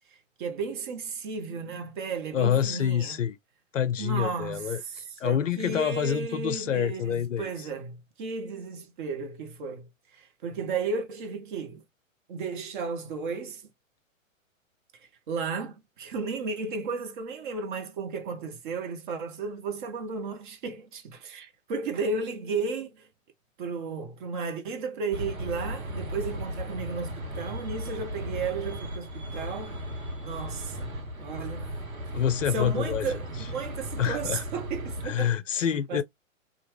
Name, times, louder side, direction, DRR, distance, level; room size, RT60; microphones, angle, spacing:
voice 1, 0.4-3.2 4.0-4.8 5.2-9.9 10.1-11.8 12.3-13.6 15.3-23.0 23.6-29.8 30.2-31.7 32.5-35.6 35.9-36.0, right 4 dB, 40° right, 0.9 m, -34 dB
voice 2, 2.3-3.4 3.7-7.7 32.1-33.2 34.0-34.4 35.0-36.0, left 9 dB, 65° left, 0.6 m, -27 dB
sound 1, 25.1-35.1, equal, 80° right, 1.2 m, -36 dB
2.9 x 2.5 x 2.9 m
figure-of-eight pair, 115°, 40 cm